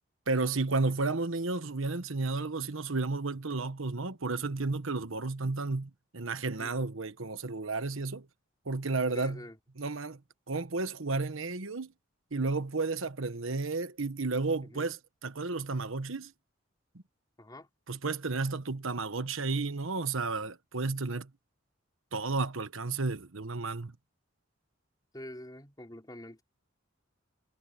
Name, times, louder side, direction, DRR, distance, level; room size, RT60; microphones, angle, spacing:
voice 1, 0.3-8.3 8.6-9.4 9.8-10.2 10.5-11.9 12.3-16.3 17.9-21.3 22.1-24.0, right 3 dB, 75° right, 1.3 m, -32 dB
voice 2, 6.6-6.9 9.1-9.6 14.7-14.9 17.4-17.7 25.1-26.4, left 1 dB, 20° left, 3.5 m, -46 dB
head